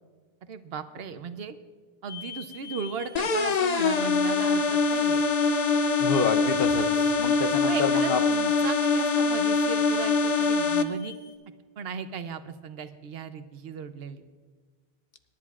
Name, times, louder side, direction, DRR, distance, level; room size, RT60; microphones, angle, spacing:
voice 1, 0.5-1.6 2.0-5.2 7.7-11.1 11.8-14.2, right 6 dB, 75° right, 11 dB, 0.9 m, -36 dB
sound 1, 2.1-11.4, left 7 dB, 30° left, 2.3 m, -49 dB
sound 2, 3.2-10.8, left 4 dB, 45° left, 0.7 m, -24 dB
voice 2, 6.0-8.2, left 6 dB, 70° left, 9 dB, 1.0 m, -28 dB
26.0 x 10.5 x 2.4 m, 1.5 s
omnidirectional pair, 1.0 m